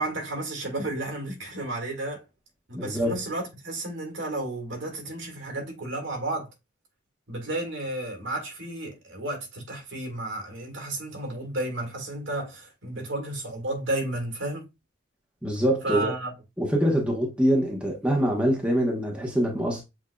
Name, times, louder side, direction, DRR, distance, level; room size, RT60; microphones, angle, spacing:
voice 1, 0.0-2.2 2.7-6.5 7.3-14.7 15.8-16.3, right 1 dB, 60° right, 1.8 m, -32 dB
voice 2, 2.7-3.2 15.4-16.1 16.6-19.8, equal, 5° right, 1.0 m, -24 dB
7.2 x 2.7 x 2.2 m
head